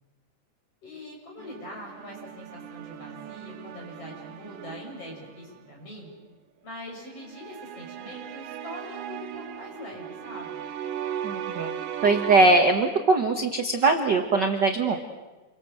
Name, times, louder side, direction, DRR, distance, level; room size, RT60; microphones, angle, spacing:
voice 1, 0.8-6.1 6.6-10.6, left 1 dB, 45° left, 0 dB, 7.5 m, -42 dB
sound 1, 1.4-5.7 7.2-12.6, right 9 dB, 85° right, 2.8 m, -37 dB
voice 2, 11.2-11.7 12.0-15.0, right 3 dB, 45° right, 4 dB, 1.5 m, -21 dB
29.0 x 24.5 x 7.8 m, 1.2 s
omnidirectional pair, 3.8 m